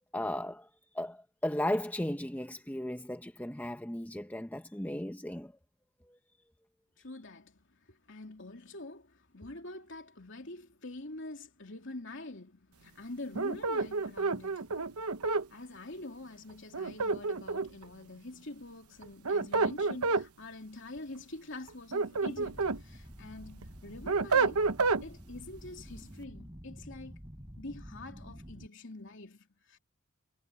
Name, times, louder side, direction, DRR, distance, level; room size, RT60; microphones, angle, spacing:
voice 1, 0.1-0.7 0.9-5.5 6.1-6.2, left 1 dB, 5° left, 0.8 m, -35 dB
voice 2, 7.0-14.8 15.5-24.6 25.0-27.2 27.6-29.8, left 2 dB, 55° left, 3.2 m, -46 dB
sound 1, 13.3-15.5 16.7-17.8 19.0-20.3 21.7-22.8 23.3-25.0, right 4 dB, 85° right, 1.0 m, -29 dB
sound 2, 22.3-28.7, equal, 15° right, 5.0 m, -49 dB
head